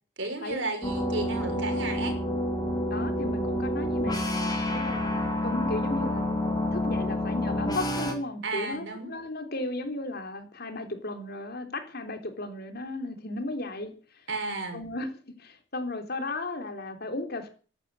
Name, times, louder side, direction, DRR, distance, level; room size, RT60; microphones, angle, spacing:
voice 1, 0.2-2.2 8.4-9.1 14.3-14.8, right 3 dB, 65° right, 5 dB, 6.0 m, -33 dB
sound 1, 0.8-8.1, left 1 dB, 20° left, 4.0 m, -28 dB
voice 2, 2.9-6.2 6.7-13.9 14.7-17.5, left 2 dB, 50° left, 6 dB, 3.6 m, -35 dB
15.5 x 11.0 x 8.5 m, 0.40 s
head